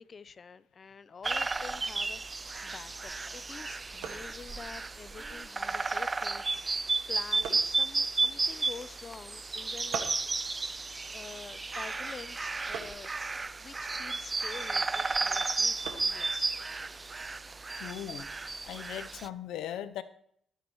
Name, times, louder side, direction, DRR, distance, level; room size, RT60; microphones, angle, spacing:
voice 1, 0.0-10.1 11.1-13.2 13.6-16.5, left 5 dB, 40° left, 18 dB, 0.5 m, -47 dB
sound 1, 1.2-19.3, right 3 dB, 25° right, 0.3 m, -33 dB
sound 2, 2.5-18.0, right 7 dB, 85° right, 1.7 m, -48 dB
voice 2, 17.7-18.3 18.7-20.0, left 11 dB, 85° left, 12 dB, 0.7 m, -38 dB
21.5 x 9.3 x 3.1 m, 0.69 s
cardioid pair, 90°, 0 cm